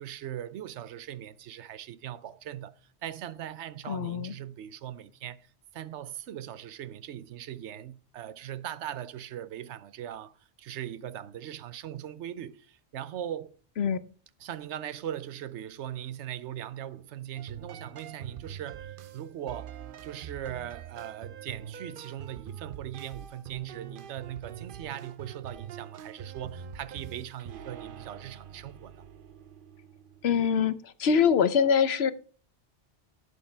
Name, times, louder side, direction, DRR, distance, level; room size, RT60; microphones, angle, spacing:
voice 1, 0.0-5.5 5.7-13.6 14.4-19.7 20.0-29.1, right 11 dB, 90° right, 1.0 m, -40 dB
voice 2, 3.9-4.3 13.8-14.0 30.2-32.1, left 7 dB, 70° left, 1.0 m, -24 dB
sound 1, 17.4-30.7, right 8 dB, 55° right, 0.7 m, -44 dB
11.5 x 8.1 x 3.3 m
omnidirectional pair, 1.1 m